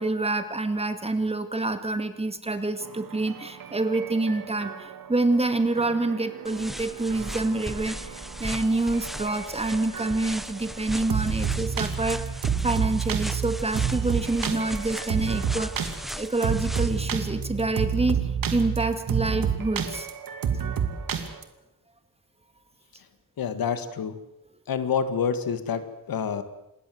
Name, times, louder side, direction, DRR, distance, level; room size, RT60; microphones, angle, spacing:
voice 1, 0.0-12.2 12.6-20.1, right 2 dB, 15° right, 9 dB, 2.1 m, -27 dB
sound 1, 2.8-21.4, right 7 dB, 75° right, 2.6 m, -30 dB
sound 2, 6.4-17.1, equal, ahead, 0.8 m, -37 dB
voice 2, 23.4-24.2 24.7-26.4, left 7 dB, 80° left, 11 dB, 2.1 m, -27 dB
27.0 x 21.5 x 7.9 m, 0.89 s
wide cardioid pair, 160°, 35 cm